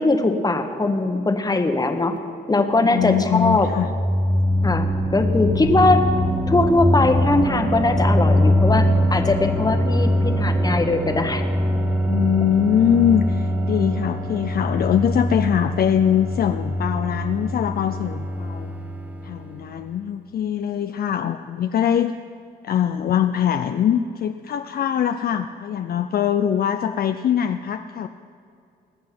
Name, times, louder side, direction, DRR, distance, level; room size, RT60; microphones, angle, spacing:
voice 1, 0.0-2.1 2.5-3.7 4.6-6.0 6.5-11.4 22.9-23.0, left 2 dB, 20° left, 6 dB, 1.3 m, -20 dB
voice 2, 2.8-3.9 12.1-18.7 19.2-22.1 22.6-28.1, left 9 dB, 50° left, 8 dB, 0.5 m, -22 dB
sound 1, 3.0-19.7, equal, 5° right, 1.0 m, -23 dB
20.5 x 7.6 x 6.0 m, 2.5 s
cardioid pair, 90°, 20 cm